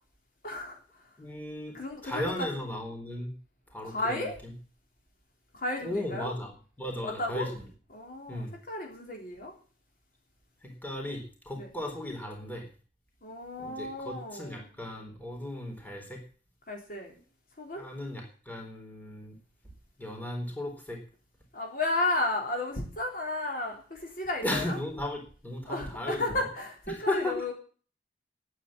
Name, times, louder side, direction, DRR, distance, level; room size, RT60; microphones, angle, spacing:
voice 1, 0.4-0.8 1.7-2.5 3.8-4.4 5.5-6.3 7.0-7.5 7.9-9.5 11.6-11.7 13.2-14.7 16.7-17.1 17.6-17.9 21.5-24.8 25.7-27.5, left 2 dB, 50° left, 1 dB, 3.8 m, -33 dB
voice 2, 1.2-3.3 3.7-4.5 5.8-6.5 6.8-7.6 8.3-8.5 10.6-12.7 13.6-16.2 17.7-19.3 20.0-21.0 24.4-26.3 26.9-27.4, left 1 dB, 10° left, 1 dB, 4.2 m, -36 dB
10.5 x 9.4 x 10.0 m, 0.40 s
head